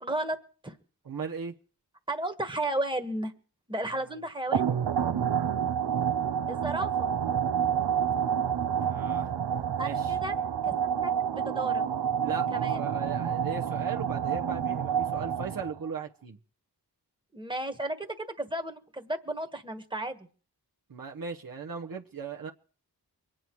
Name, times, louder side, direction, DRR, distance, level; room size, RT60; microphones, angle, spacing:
voice 1, 0.0-0.4 0.6-0.7 2.1-3.3 3.7-4.6 6.5-7.1 9.8-10.4 10.6-10.7 11.0-11.8 12.5-12.8 17.3-20.2, right 1 dB, 10° right, 6 dB, 1.5 m, -33 dB
voice 2, 1.0-1.5 3.9-4.0 8.8-9.3 9.8-10.2 12.2-16.4 20.9-22.5, right 5 dB, 55° right, 1 dB, 1.1 m, -38 dB
sound 1, 4.5-15.9, right 8 dB, 75° right, 0.8 m, -28 dB
23.5 x 9.0 x 4.7 m, 0.41 s
wide cardioid pair, 70°, 40 cm